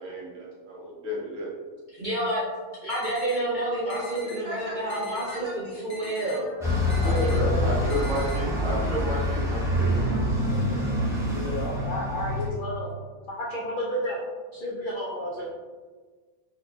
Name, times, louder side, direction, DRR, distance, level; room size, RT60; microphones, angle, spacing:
voice 1, 0.0-1.5 7.0-10.2, equal, 75° right, -4 dB, 1.2 m, -32 dB
voice 2, 1.9-2.4 2.8-5.5 5.8-6.5, right 1 dB, 45° right, -9 dB, 0.7 m, -29 dB
sound 1, 2.9-3.4 3.9-4.4 4.9-5.4 5.9-6.4 6.9-7.4 7.9-8.4, left 2 dB, 60° left, 0.7 m, -43 dB
voice 3, 4.0-7.8, equal, 20° right, -8 dB, 1.2 m, -43 dB
Bus, 6.6-12.5, left 1 dB, 5° right, 0.3 m, -26 dB
voice 4, 6.8-8.1 9.5-10.6 11.3-12.9 13.3-14.2 14.5-15.5, equal, 85° left, -3 dB, 0.4 m, -32 dB
4.2 x 2.2 x 2.6 m, 1.4 s
omnidirectional pair, 1.4 m